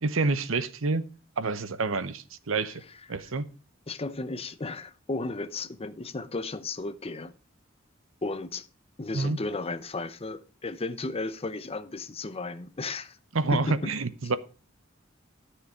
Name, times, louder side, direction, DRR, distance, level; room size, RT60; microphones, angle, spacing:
voice 1, 0.0-1.0 1.4-2.8 3.1-3.4 9.1-9.4 13.3-14.4, right 3 dB, 75° right, 0.9 m, -28 dB
voice 2, 3.9-7.3 8.2-8.7 9.0-13.2 13.5-13.9, left 3 dB, 30° left, 0.8 m, -34 dB
12.5 x 6.7 x 4.8 m
head